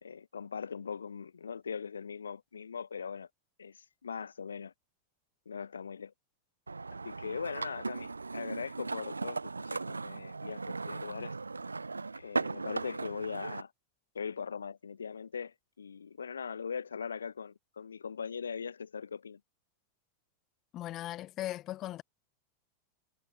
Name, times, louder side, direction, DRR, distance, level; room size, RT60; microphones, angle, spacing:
voice 1, 0.0-3.3 3.6-4.7 5.4-6.1 7.0-11.3 12.1-13.7 14.1-19.4, left 6 dB, 70° left, 1.2 m, -40 dB
sound 1, 6.7-13.6, right 3 dB, 80° right, 0.4 m, -38 dB
voice 2, 20.7-22.0, left 14 dB, 35° left, 0.8 m, -38 dB
figure-of-eight pair, 90°, 0 cm